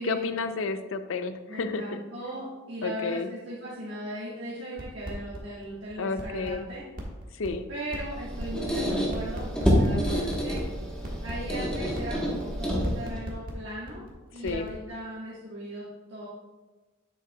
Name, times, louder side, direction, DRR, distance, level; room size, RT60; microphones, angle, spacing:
voice 1, 0.0-2.0 2.8-3.3 6.0-6.7 7.3-7.6 9.9-10.4 14.4-14.7, left 4 dB, 80° left, 10 dB, 0.5 m, -31 dB
voice 2, 1.5-6.8 7.7-10.6 11.2-14.0 14.3-16.3, equal, 65° right, -8 dB, 1.6 m, -38 dB
sound 1, 4.8-5.4 5.6-5.7 5.9-14.1 14.4-14.7, equal, 45° right, 1.5 m, -37 dB
Squeak, 8.0-13.2, equal, 5° left, 1.2 m, -28 dB
9.2 x 7.6 x 2.3 m, 1.2 s
head